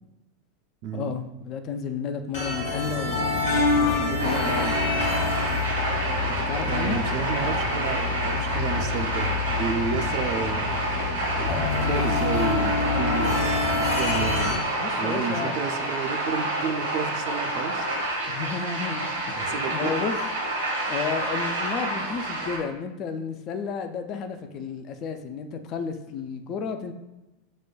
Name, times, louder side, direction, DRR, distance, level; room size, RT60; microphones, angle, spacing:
voice 1, 0.9-4.8 6.5-7.0 14.8-15.6 18.3-20.2 20.9-26.9, left 5 dB, 40° left, 8 dB, 0.3 m, -32 dB
sound 1, 2.3-14.6, left 4 dB, 60° left, 1.0 m, -27 dB
sound 2, 4.2-22.6, right 1 dB, 80° right, 1.0 m, -28 dB
voice 2, 6.6-10.6 11.3-14.5 14.9-17.9 19.4-19.9, right 6 dB, 50° right, 6 dB, 0.4 m, -31 dB
6.1 x 2.1 x 2.2 m, 0.98 s
figure-of-eight pair, 85°, 0 cm